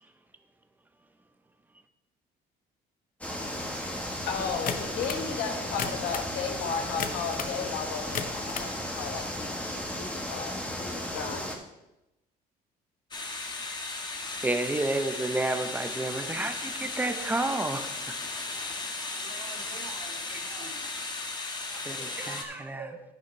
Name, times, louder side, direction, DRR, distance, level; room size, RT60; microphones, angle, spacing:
sound 1, 3.2-11.6, left 1 dB, 10° left, 1.3 m, -35 dB
voice 1, 4.3-11.6, left 6 dB, 80° left, 5 dB, 1.5 m, -35 dB
sound 2, 4.7-5.3 5.7-6.3 7.0-7.6 8.0-8.7, left 7 dB, 55° left, 0.8 m, -34 dB
sound 3, 13.1-22.4, left 3 dB, 25° left, 1.3 m, -36 dB
voice 2, 14.4-17.9 20.3-20.4 21.9-22.9, right 2 dB, 10° right, 7 dB, 0.9 m, -30 dB
voice 3, 17.0-17.5 19.1-20.8 22.0-23.0, right 5 dB, 80° right, -1 dB, 2.4 m, -46 dB
10.5 x 8.8 x 3.3 m, 0.95 s
cardioid pair, 110°, 17 cm